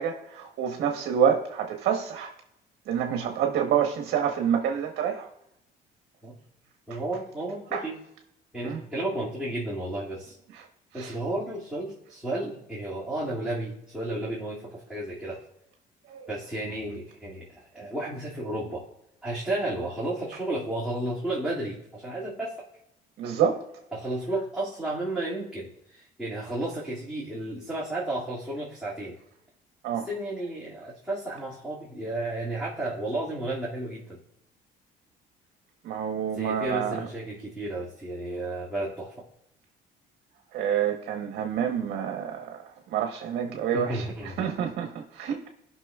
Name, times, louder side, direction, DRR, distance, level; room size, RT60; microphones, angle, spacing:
voice 1, 0.0-2.3 2.9-5.3 6.9-7.0 7.7-7.8 8.6-8.8 10.5-10.6 11.0-11.1 16.1-16.3 23.2-23.6 29.8-30.1 35.8-37.0 40.5-44.1 44.4-45.4, right 8 dB, 75° right, 4 dB, 1.1 m, -27 dB
voice 2, 6.9-8.0 8.5-10.4 10.9-15.4 16.3-18.9 19.2-22.7 23.9-29.2 30.0-34.2 36.3-39.1 43.7-44.5, right 1 dB, 5° right, -8 dB, 2.3 m, -33 dB
17.5 x 5.9 x 2.4 m, 0.81 s
cardioid pair, 110°, 17 cm